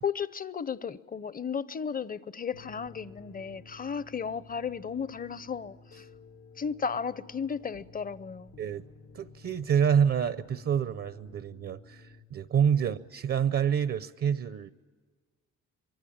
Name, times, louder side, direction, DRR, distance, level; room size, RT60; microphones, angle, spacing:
voice 1, 0.0-6.1 6.6-8.6, left 6 dB, 30° left, 0.7 m, -34 dB
sound 1, 2.5-12.2, left 3 dB, 85° left, 1.6 m, -53 dB
voice 2, 9.1-14.7, right 8 dB, 50° right, 0.7 m, -27 dB
25.0 x 22.5 x 8.7 m
cardioid pair, 90°, 30 cm